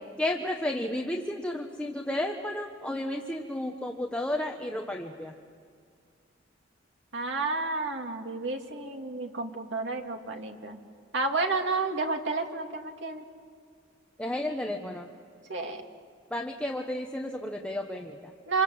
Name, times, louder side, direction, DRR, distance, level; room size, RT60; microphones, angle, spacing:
voice 1, 0.2-5.3 14.2-15.1 16.3-18.3, left 1 dB, 5° left, 2 dB, 1.1 m, -32 dB
voice 2, 7.1-10.8 11.1-13.2 15.5-15.8 18.5-18.6, right 3 dB, 65° right, 3 dB, 2.5 m, -31 dB
27.5 x 26.5 x 7.9 m, 2.2 s
head